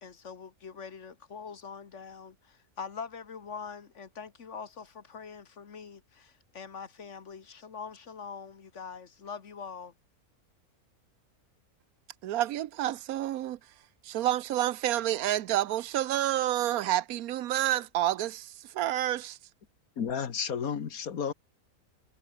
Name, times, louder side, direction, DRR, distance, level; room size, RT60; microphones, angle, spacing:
voice 1, 0.0-9.9, left 6 dB, 55° left, 1.8 m, -43 dB
voice 2, 12.2-13.6 14.0-19.4, right 13 dB, 80° right, 1.1 m, -29 dB
voice 3, 20.0-21.3, left 7 dB, 75° left, 1.9 m, -32 dB
omnidirectional pair, 1.5 m